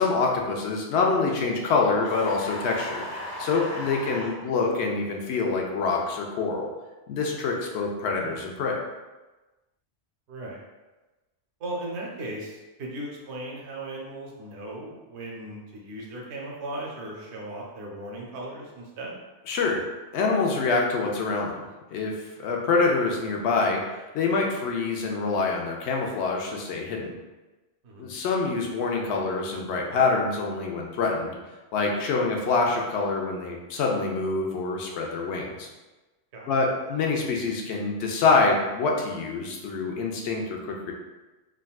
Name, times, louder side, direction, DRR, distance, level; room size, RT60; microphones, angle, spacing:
voice 1, 0.0-3.0 3.4-6.7 7.1-8.8 19.5-19.8 20.1-21.6 21.9-23.8 24.1-27.2 28.0-31.4 31.7-35.7 36.5-40.9, left 4 dB, 75° left, 0 dB, 0.8 m, -26 dB
sound 1, 2.0-4.3, left 1 dB, 15° right, 0.6 m, -36 dB
voice 2, 10.3-10.6 11.6-19.2 27.8-28.2 36.3-36.5, right 1 dB, 75° right, -2 dB, 0.9 m, -37 dB
3.6 x 2.2 x 2.3 m, 1.1 s
omnidirectional pair, 1.2 m